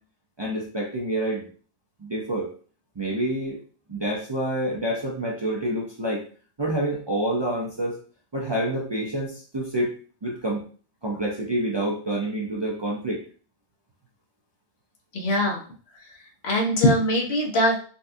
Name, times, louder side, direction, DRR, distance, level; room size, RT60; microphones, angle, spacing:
voice 1, 0.4-1.5 2.0-2.5 3.0-3.6 3.9-6.2 6.6-8.0 8.3-9.9 10.2-10.6 11.0-13.2, right 1 dB, 35° right, -4 dB, 0.4 m, -27 dB
voice 2, 15.1-15.6 16.4-17.8, left 1 dB, 70° left, 0 dB, 1.1 m, -21 dB
4.0 x 2.3 x 2.6 m, 0.42 s
omnidirectional pair, 1.1 m